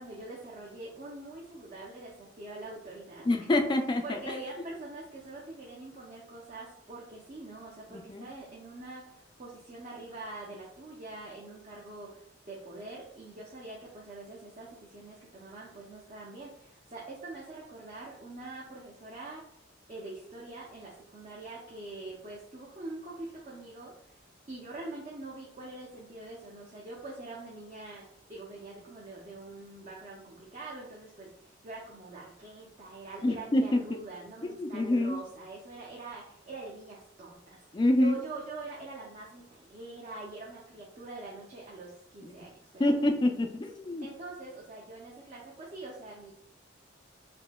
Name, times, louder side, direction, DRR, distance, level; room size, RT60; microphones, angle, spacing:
voice 1, 0.0-3.3 4.0-19.6 19.9-42.9 44.0-46.3, right 2 dB, 40° right, -4 dB, 0.5 m, -44 dB
voice 2, 3.3-4.2 7.9-8.2 33.2-33.8 34.4-35.2 37.7-38.1 42.2-42.3 42.8-44.1, left 1 dB, 25° left, 5 dB, 0.3 m, -26 dB
4.2 x 2.6 x 2.2 m, 0.75 s
head